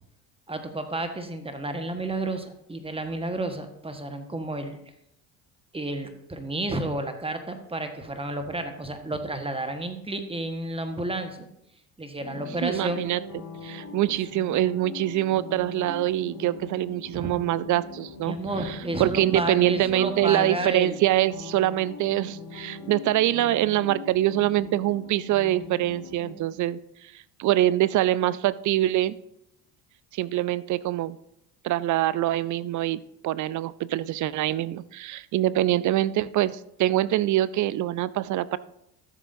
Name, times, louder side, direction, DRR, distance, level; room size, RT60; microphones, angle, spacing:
voice 1, 0.5-4.8 5.7-11.5 12.0-13.0 13.6-13.8 14.2-14.3 17.1-17.3 18.2-21.0, right 2 dB, 10° right, 7 dB, 1.4 m, -31 dB
sound 1, 12.2-26.3, left 3 dB, 40° left, 2.8 m, -41 dB
voice 2, 12.6-13.2 13.6-18.4 18.6-29.2 30.1-31.2 31.6-38.6, right 14 dB, 40° right, 18 dB, 0.4 m, -24 dB
13.5 x 7.3 x 2.7 m, 0.80 s
hypercardioid pair, 65°, 47 cm